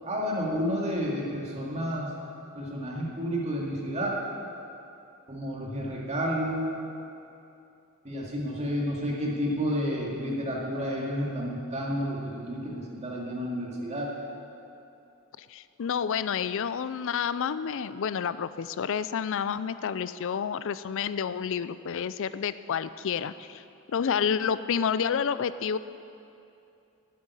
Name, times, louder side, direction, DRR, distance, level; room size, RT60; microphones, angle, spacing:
voice 1, 0.0-2.1 2.5-4.2 5.3-6.7 8.0-14.1, equal, 30° right, -3 dB, 2.2 m, -30 dB
voice 2, 15.4-25.8, left 7 dB, 60° left, 14 dB, 0.4 m, -29 dB
9.2 x 8.8 x 9.8 m, 2.7 s
head